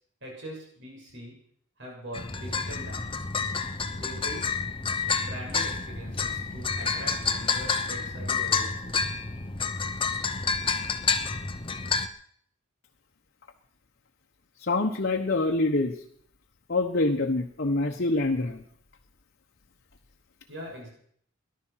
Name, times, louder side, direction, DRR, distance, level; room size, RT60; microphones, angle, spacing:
voice 1, 0.2-1.3 1.8-3.1 3.9-4.4 5.2-9.2 20.5-20.9, equal, 55° right, -2 dB, 6.7 m, -42 dB
sound 1, 2.1-12.1, left 5 dB, 25° left, 0.9 m, -29 dB
voice 2, 14.7-15.9 16.7-18.6, left 2 dB, 50° left, 2 dB, 1.1 m, -25 dB
18.5 x 11.5 x 5.8 m, 0.63 s
head